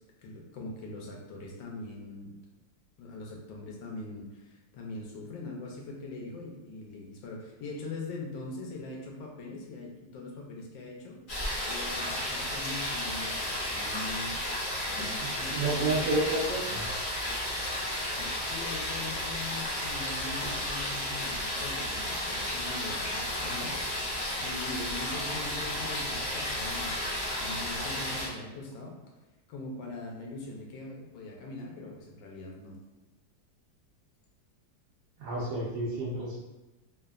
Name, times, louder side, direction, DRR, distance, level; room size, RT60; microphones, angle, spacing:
voice 1, 0.0-2.4 3.0-11.2 11.7-14.4 14.9-16.3 18.0-27.0 27.4-28.9 29.5-32.8, left 2 dB, 85° left, -1 dB, 1.3 m, -42 dB
sound 1, 11.3-28.3, left 1 dB, 55° left, 0.5 m, -33 dB
voice 2, 15.0-16.8 35.2-36.4, right 2 dB, 70° right, -6 dB, 1.0 m, -31 dB
3.3 x 2.0 x 2.3 m, 1.1 s
omnidirectional pair, 2.0 m